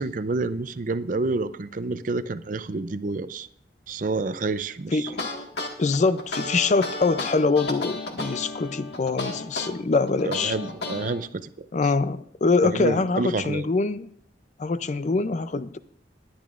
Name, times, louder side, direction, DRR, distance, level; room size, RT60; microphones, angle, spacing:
voice 1, 0.0-3.5 3.9-5.1 10.2-11.7 12.6-13.7, right 3 dB, 50° right, 13 dB, 0.5 m, -29 dB
voice 2, 4.9-5.3 5.8-10.5 11.7-14.1 14.6-15.8, left 3 dB, 40° left, 13 dB, 0.4 m, -24 dB
sound 1, 5.1-11.1, left 2 dB, 65° left, 1.7 m, -32 dB
19.5 x 10.5 x 2.5 m, 0.68 s
head